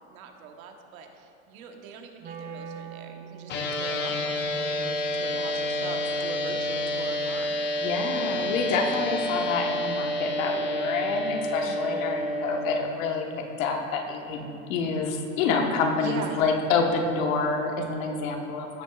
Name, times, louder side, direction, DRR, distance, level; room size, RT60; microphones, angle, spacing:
voice 1, 0.0-7.7 11.6-12.1 16.0-16.4, right 6 dB, 75° right, 4 dB, 1.2 m, -41 dB
Wind instrument woodwind instrument, 2.2-8.3, right 7 dB, 25° right, 0.5 m, -45 dB
sound 1, 3.5-12.8, left 1 dB, 25° left, 0.7 m, -29 dB
voice 2, 7.8-18.8, left 4 dB, 70° left, 2 dB, 1.3 m, -27 dB
15.5 x 6.3 x 2.4 m, 2.8 s
supercardioid pair, 135°, 41 cm